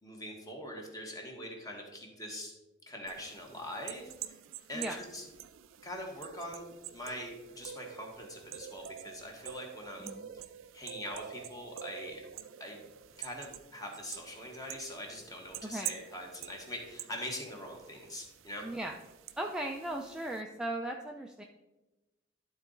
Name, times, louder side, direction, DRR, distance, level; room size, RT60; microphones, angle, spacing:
voice 1, 0.0-2.5 2.9-4.1 4.7-5.2 5.8-10.1 10.7-12.2 12.6-12.8 13.1-18.6, left 1 dB, 20° left, 1 dB, 1.4 m, -43 dB
sound 1, 3.1-20.4, right 10 dB, 85° right, 0.4 m, -47 dB
voice 2, 15.6-16.0 18.6-19.0 19.4-21.4, right 1 dB, 5° right, 1 dB, 0.4 m, -37 dB
11.0 x 4.0 x 3.8 m, 1.1 s
head